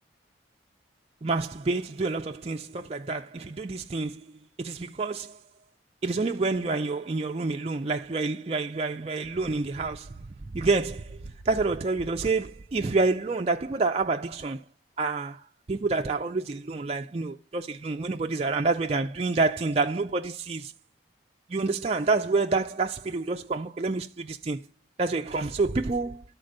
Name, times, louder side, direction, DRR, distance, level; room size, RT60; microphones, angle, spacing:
voice 1, 1.2-4.2 4.6-5.4 6.0-10.2 10.4-14.6 15.0-15.4 15.7-20.7 21.5-24.6 25.0-26.2, right 3 dB, 30° right, 0.4 m, -28 dB
12.0 x 4.4 x 6.5 m
head